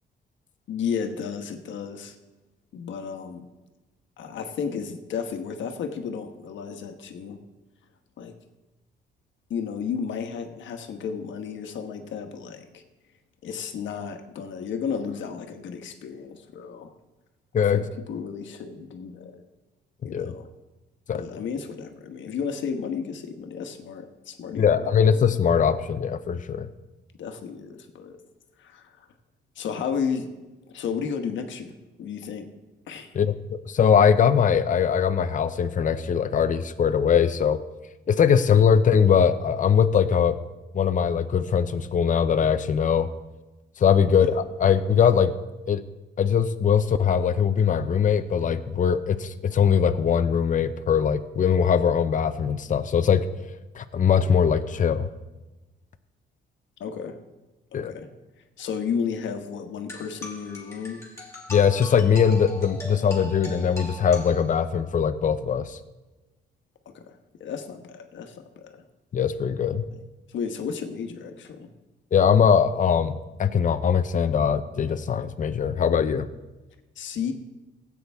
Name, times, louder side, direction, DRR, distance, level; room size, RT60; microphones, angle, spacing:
voice 1, 0.7-2.2 2.7-3.5 4.2-7.4 8.2-8.3 9.5-12.8 13.4-16.9 17.7-19.4 20.0-20.5 21.1-24.9 27.2-28.2 28.6-29.1 29.5-30.3 30.7-32.5 32.9-33.1 44.2-44.3 56.8-57.2 57.7-58.1 58.6-61.0 66.8-68.8 70.3-71.7 77.0-77.3, left 6 dB, 70° left, 6 dB, 1.3 m, -33 dB
voice 2, 20.0-20.3 21.1-21.2 24.6-26.7 33.1-37.6 38.1-40.4 40.7-43.1 43.8-45.4 45.7-45.8 46.2-53.3 53.8-55.1 57.7-57.9 61.5-65.8 69.1-69.8 72.1-76.3, left 7 dB, 40° left, 10 dB, 0.7 m, -21 dB
sound 1, 59.9-64.9, left 1 dB, 15° left, 2.6 m, -41 dB
16.0 x 8.4 x 3.6 m, 1.1 s
cardioid pair, 90°, 20 cm